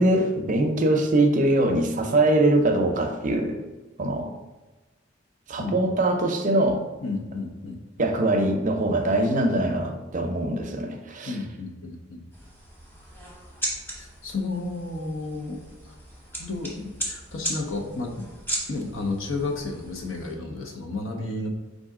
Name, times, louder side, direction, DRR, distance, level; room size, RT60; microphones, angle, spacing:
voice 1, 0.0-3.6 4.0-4.3 5.5-6.8 8.0-11.3, right 1 dB, 40° right, 4 dB, 0.5 m, -22 dB
voice 2, 7.0-8.1 11.3-12.2 13.9-15.6 15.8-16.0 16.4-18.3 18.7-21.5, left 3 dB, 75° left, 2 dB, 0.7 m, -32 dB
sound 1, 12.3-20.3, right 1 dB, 10° left, 1.0 m, -37 dB
4.8 x 2.6 x 3.6 m, 1.2 s
head